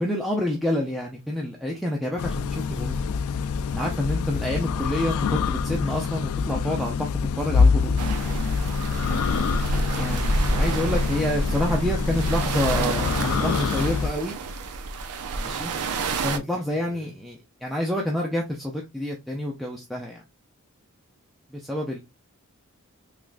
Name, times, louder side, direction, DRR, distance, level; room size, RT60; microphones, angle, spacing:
voice 1, 0.0-3.0 3.7-7.1 7.4-7.9 9.7-14.4 15.4-15.7 16.2-20.2 21.5-22.0, left 1 dB, ahead, 0.4 m, -28 dB
sound 1, 2.2-14.1, left 5 dB, 75° left, 0.3 m, -26 dB
sound 2, 8.0-16.4, right 2 dB, 85° right, 0.5 m, -28 dB
voice 2, 8.9-9.3 16.7-17.1, right 1 dB, 35° right, 1.9 m, -44 dB
3.5 x 3.1 x 2.4 m
head